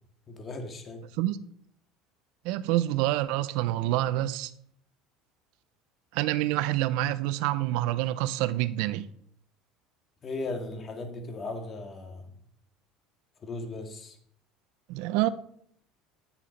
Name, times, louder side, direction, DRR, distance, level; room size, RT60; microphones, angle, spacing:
voice 1, 0.3-1.0 10.2-12.2 13.4-14.2, left 2 dB, 35° left, 2.3 m, -37 dB
voice 2, 2.4-4.5 6.1-9.1 14.9-15.3, right 15 dB, 75° right, 0.7 m, -27 dB
9.9 x 7.5 x 5.3 m
supercardioid pair, 110°, 0 cm